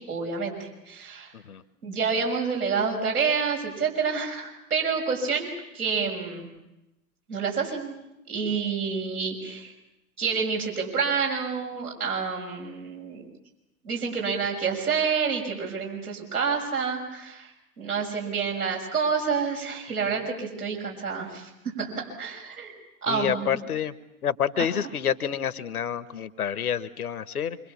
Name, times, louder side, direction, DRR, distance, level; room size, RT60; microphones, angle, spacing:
voice 1, 0.1-1.3 1.8-6.5 7.3-7.9 8.3-9.7 10.2-13.3 13.8-17.5 17.8-21.5 21.8-22.7 23.0-23.4 24.6-24.7, right 5 dB, 75° right, 0 dB, 6.5 m, -28 dB
voice 2, 23.1-23.9 24.2-27.6, left 8 dB, 75° left, 14 dB, 1.3 m, -28 dB
26.0 x 25.5 x 7.2 m, 0.92 s
figure-of-eight pair, 90°, 45 cm